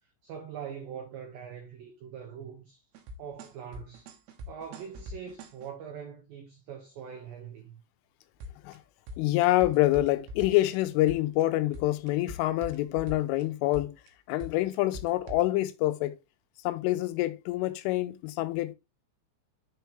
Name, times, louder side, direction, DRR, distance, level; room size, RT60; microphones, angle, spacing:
voice 1, 0.2-2.8 3.2-4.1 4.5-7.8, right 7 dB, 90° right, 2.0 m, -43 dB
sound 1, 2.9-5.7 8.4-8.8 9.1-10.8 11.1-11.4 11.7-13.4 13.7-14.1 14.4-15.4, left 1 dB, 70° right, 2.8 m, -42 dB
voice 2, 9.2-14.0 14.3-16.2 16.6-18.8, left 16 dB, 85° left, 3.2 m, -26 dB
9.3 x 4.6 x 3.3 m
omnidirectional pair, 5.6 m